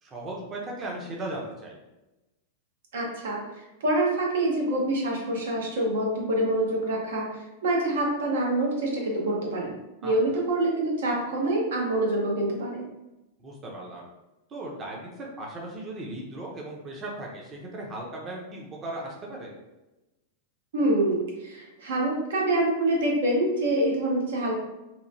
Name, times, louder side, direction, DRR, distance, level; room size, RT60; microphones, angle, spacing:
voice 1, 0.0-1.8 10.0-10.4 13.4-14.1 14.5-19.5, right 1 dB, 25° right, -2 dB, 0.5 m, -37 dB
voice 2, 2.9-3.4 3.8-12.9 20.7-24.5, right 1 dB, 85° right, -2 dB, 0.8 m, -26 dB
2.9 x 2.1 x 2.6 m, 1.0 s
supercardioid pair, 140°, 0 cm